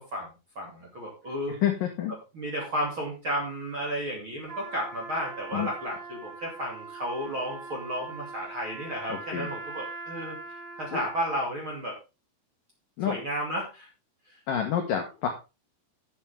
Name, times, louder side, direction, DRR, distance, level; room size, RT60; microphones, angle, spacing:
voice 1, 0.0-1.6 2.3-10.4 10.8-12.0 13.0-13.9 14.3-14.4, equal, 40° right, -1 dB, 2.1 m, -33 dB
voice 2, 1.6-2.1 5.5-5.7 9.1-9.5 10.9-11.0 13.0-13.2 14.5-15.3, left 9 dB, 85° left, 3 dB, 1.9 m, -28 dB
Trumpet, 4.4-11.5, right 3 dB, 60° right, 5.7 m, -42 dB
11.0 x 9.1 x 3.5 m, 0.29 s
omnidirectional pair, 5.9 m